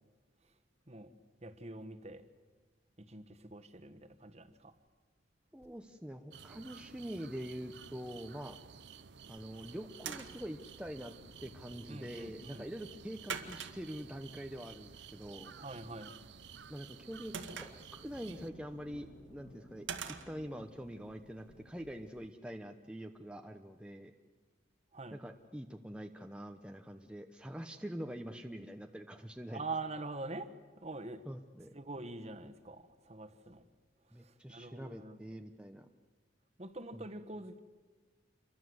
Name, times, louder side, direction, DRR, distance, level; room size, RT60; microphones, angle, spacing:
voice 1, 1.4-2.2 3.0-4.7 11.9-12.7 15.6-16.1 24.9-25.2 29.5-31.2 31.7-33.6 34.1-35.3 36.6-37.6, right 2 dB, 35° right, 1.5 m, -45 dB
voice 2, 5.5-8.6 9.3-11.1 11.4-15.5 16.7-19.9 20.3-24.1 25.1-29.6 31.3-31.8 34.1-35.9 36.9-37.1, equal, 5° right, 0.9 m, -45 dB
sound 1, 5.6-7.1 7.5-8.0 8.4-8.5 8.8-9.0 9.3-17.0 17.5-22.2, equal, 90° left, 7.1 m, -61 dB
sound 2, 6.3-18.5, right 7 dB, 65° right, 0.8 m, -54 dB
sound 3, 9.2-22.3, right 6 dB, 85° right, 2.0 m, -49 dB
28.5 x 23.5 x 8.0 m
head